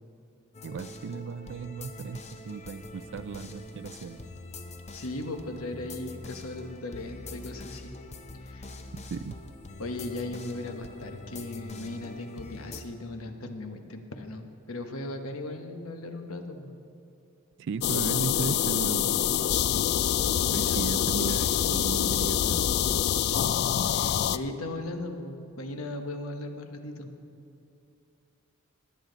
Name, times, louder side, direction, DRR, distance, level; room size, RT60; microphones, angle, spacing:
sound 1, 0.5-12.8, left 2 dB, 30° left, 0.7 m, -44 dB
voice 1, 0.6-4.2 9.1-9.4 17.6-19.3 20.5-22.8, right 5 dB, 60° right, 16 dB, 0.4 m, -36 dB
voice 2, 4.9-7.9 8.4-8.7 9.8-16.7 20.5-21.8 23.3-23.6 23.9-27.1, left 2 dB, 75° left, 6 dB, 1.1 m, -38 dB
sound 2, 17.8-24.4, left 10 dB, 50° left, 0.3 m, -26 dB
21.0 x 8.7 x 3.9 m, 2.6 s
head